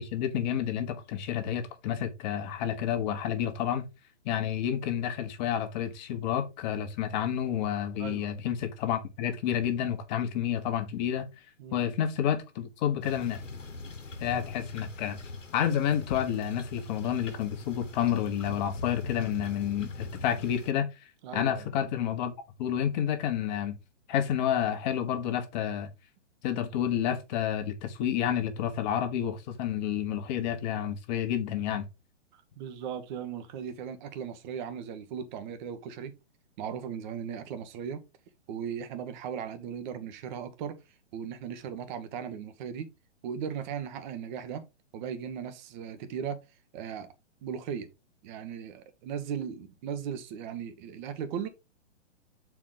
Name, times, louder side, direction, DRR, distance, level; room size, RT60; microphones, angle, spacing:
voice 1, 0.0-3.9 4.2-11.3 11.7-13.4 14.2-15.2 15.5-20.9 21.3-22.3 22.6-23.8 24.1-25.9 26.4-31.8, left 9 dB, 35° left, 1.5 m, -30 dB
voice 2, 8.0-8.3 11.6-11.8 21.2-21.7 32.6-36.1 36.6-38.0 38.5-40.8 41.1-42.9 43.2-44.6 44.9-46.4 46.7-47.1 47.4-47.9 48.2-51.5, right 8 dB, 40° right, 1.3 m, -37 dB
sound 1, 13.0-20.7, left 3 dB, 90° left, 1.4 m, -42 dB
7.2 x 4.7 x 3.8 m
figure-of-eight pair, 125°, 36 cm